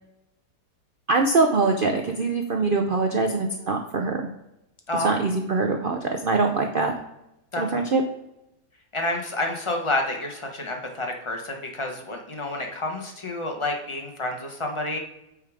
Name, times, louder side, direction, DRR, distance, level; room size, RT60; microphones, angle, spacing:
voice 1, 1.1-4.2 5.0-6.9 7.6-8.0, right 3 dB, 60° right, 3 dB, 0.5 m, -23 dB
voice 2, 8.9-15.0, left 2 dB, 20° left, 2 dB, 0.9 m, -29 dB
8.3 x 3.6 x 4.8 m, 0.88 s
omnidirectional pair, 1.8 m